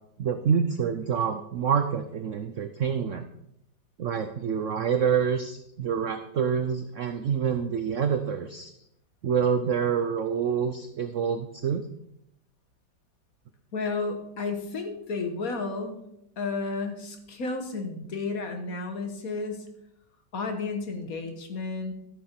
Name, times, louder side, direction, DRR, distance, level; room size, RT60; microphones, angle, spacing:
voice 1, 0.2-3.3 4.0-8.7 9.2-11.8, right 7 dB, 75° right, 8 dB, 0.7 m, -27 dB
voice 2, 13.7-16.0 16.4-19.7 20.3-21.9, left 3 dB, 50° left, 5 dB, 1.6 m, -32 dB
13.5 x 6.9 x 4.4 m, 0.78 s
omnidirectional pair, 2.1 m